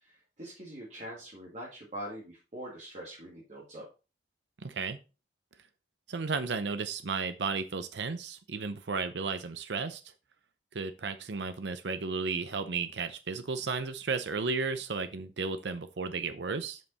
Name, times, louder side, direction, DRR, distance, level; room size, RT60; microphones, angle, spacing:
voice 1, 0.0-3.8, equal, 40° right, -5 dB, 2.1 m, -43 dB
voice 2, 4.6-5.0 6.1-10.0 10.7-16.8, right 4 dB, 80° right, 10 dB, 0.7 m, -34 dB
7.6 x 5.5 x 4.0 m, 0.31 s
head